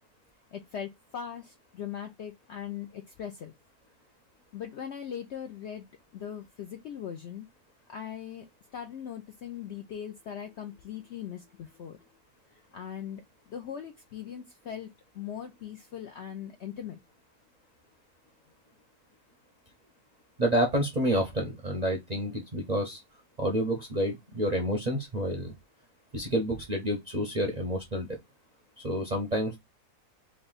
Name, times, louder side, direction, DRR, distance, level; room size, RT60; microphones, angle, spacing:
voice 1, 0.5-3.5 4.5-5.9 6.1-7.5 7.9-12.0 12.5-13.2 13.5-14.9 15.1-17.0, left 9 dB, 70° left, 0.6 m, -40 dB
voice 2, 20.4-23.0 23.4-25.5 26.1-28.2 28.8-29.6, equal, 45° right, 0.5 m, -29 dB
3.3 x 2.6 x 3.9 m
omnidirectional pair, 1.6 m